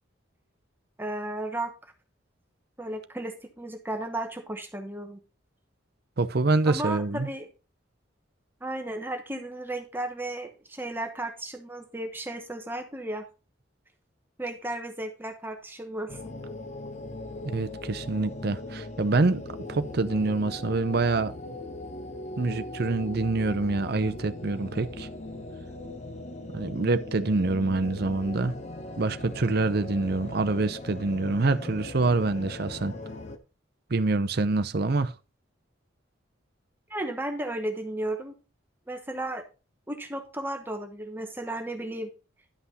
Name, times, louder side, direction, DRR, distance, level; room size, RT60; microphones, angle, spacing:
voice 1, 1.0-1.9 2.8-5.2 6.7-7.5 8.6-13.2 14.4-16.2 36.9-38.3 38.9-39.4 39.9-42.1, right 1 dB, 10° right, 1.0 m, -34 dB
voice 2, 6.2-7.3 17.4-21.3 22.4-25.1 26.5-28.6 29.0-32.9 33.9-35.1, right 3 dB, 55° right, 0.6 m, -26 dB
sound 1, 16.1-33.4, left 2 dB, 35° left, 1.0 m, -39 dB
11.5 x 5.9 x 4.2 m
head